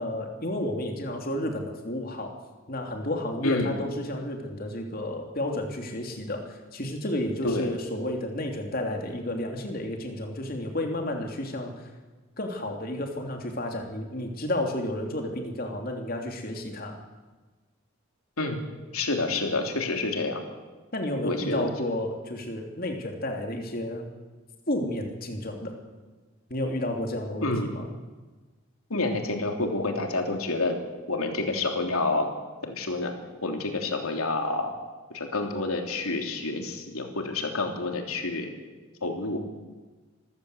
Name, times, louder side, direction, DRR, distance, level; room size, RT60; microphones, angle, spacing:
voice 1, 0.0-2.4 2.7-11.9 12.4-17.0 20.9-24.1 24.7-25.7 26.5-27.8, left 1 dB, 45° left, 3 dB, 3.1 m, -31 dB
voice 2, 3.4-3.7 7.4-7.7 18.4-18.6 18.9-20.4 21.2-21.7 27.4-27.8 28.9-30.8 31.1-32.3 32.6-33.1 33.4-34.7 35.1-38.5 39.0-39.4, left 2 dB, 85° left, 4 dB, 3.3 m, -28 dB
25.5 x 15.0 x 8.0 m, 1.3 s
head